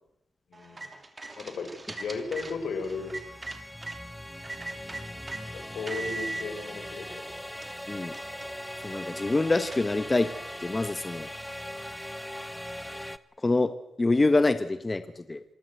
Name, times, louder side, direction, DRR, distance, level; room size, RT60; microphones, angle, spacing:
voice 1, 0.5-0.8 1.4-3.1 5.5-7.3, left 4 dB, 80° left, 7 dB, 4.3 m, -35 dB
sound 1, 0.5-4.0 4.4-5.4 5.9-6.5 7.1-7.2 7.5-10.4, right 2 dB, 30° right, 3.0 m, -41 dB
sound 2, 1.8-13.2, left 1 dB, 5° left, 1.1 m, -40 dB
voice 2, 8.8-10.3 10.6-11.3 13.4-15.4, left 2 dB, 25° left, 11 dB, 1.3 m, -26 dB
26.5 x 19.5 x 7.9 m, 0.84 s
cardioid pair, 80°, 0 cm